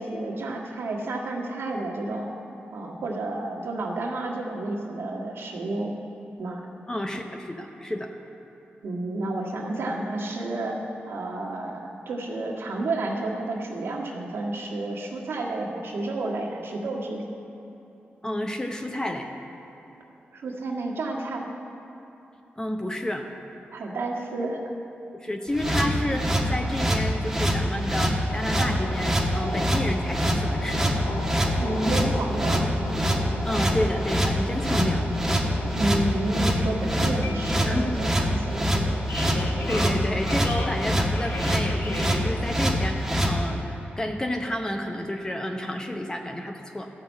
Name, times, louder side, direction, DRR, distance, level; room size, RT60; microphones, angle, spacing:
voice 1, 0.0-2.3 2.7-5.9 6.4-6.6 8.8-10.8 11.1-17.2 20.3-21.5 23.7-24.6 31.6-32.7 35.7-39.0, right 2 dB, 85° right, -2 dB, 1.6 m, -30 dB
voice 2, 6.9-8.1 18.2-19.3 22.6-23.3 25.1-31.1 33.4-35.0 37.7-37.9 39.7-46.9, left 1 dB, 15° left, 4 dB, 0.7 m, -30 dB
sound 1, 25.5-43.3, equal, 10° right, 1.2 m, -25 dB
sound 2, 28.3-42.4, left 1 dB, 75° left, 1.4 m, -35 dB
12.5 x 5.9 x 8.3 m, 3.0 s
wide cardioid pair, 95°, 4 cm